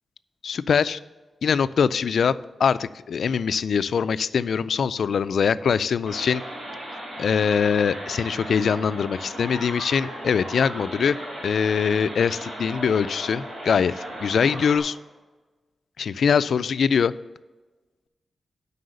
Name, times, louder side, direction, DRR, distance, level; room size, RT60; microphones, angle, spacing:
voice 1, 0.4-1.0 1.4-2.3 2.6-6.4 7.2-11.2 11.4-15.0 16.0-17.1, left 6 dB, 70° left, 16 dB, 0.3 m, -23 dB
sound 1, 6.1-14.8, right 1 dB, 60° right, 3.4 m, -36 dB
7.9 x 5.5 x 6.4 m, 1.2 s
wide cardioid pair, 170°, 0 cm